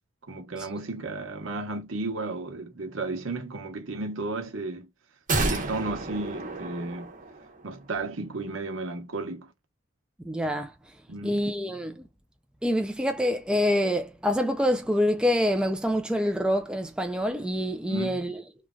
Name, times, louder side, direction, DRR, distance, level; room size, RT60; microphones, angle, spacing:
voice 1, 0.3-4.9 5.4-7.1 7.6-9.5 11.1-11.5 17.9-18.2, right 3 dB, 70° right, 0.9 m, -34 dB
sound 1, 5.3-7.6 7.9-8.0, right 2 dB, 40° right, 0.9 m, -30 dB
voice 2, 10.2-10.7 11.2-12.0 12.6-18.4, equal, 5° right, 0.3 m, -26 dB
3.1 x 2.3 x 2.2 m
head